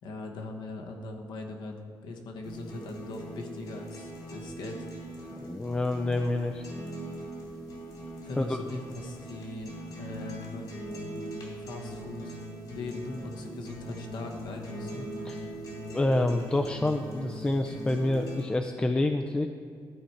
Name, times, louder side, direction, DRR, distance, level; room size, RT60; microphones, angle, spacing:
voice 1, 0.0-4.9 5.2-5.5 8.2-10.7 11.6-12.4 12.7-15.1, left 2 dB, 80° left, 2 dB, 1.1 m, -40 dB
sound 1, 2.4-18.4, right 1 dB, 60° left, 2.3 m, -41 dB
voice 2, 5.4-6.7 8.4-8.6 15.3-15.4 15.9-19.5, left 2 dB, 15° left, 5 dB, 0.3 m, -27 dB
13.0 x 4.6 x 4.4 m, 2.4 s
cardioid pair, 130°, 8 cm